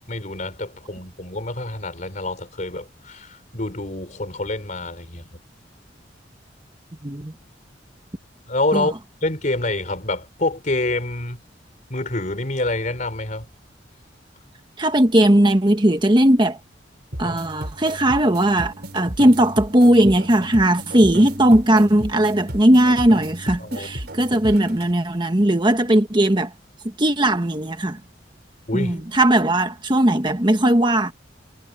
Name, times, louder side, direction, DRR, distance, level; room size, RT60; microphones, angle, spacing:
voice 1, 0.1-5.4 8.5-8.9 9.2-11.4 11.9-13.5 23.6-23.9 28.7-29.0, left 2 dB, 45° left, 3.8 m, -27 dB
voice 2, 7.0-7.3 8.7-8.9 14.8-16.6 17.2-26.5 27.0-28.0 28.7-31.1, right 1 dB, 25° right, 1.4 m, -18 dB
sound 1, 17.1-24.9, right 1 dB, 60° right, 4.6 m, -34 dB
head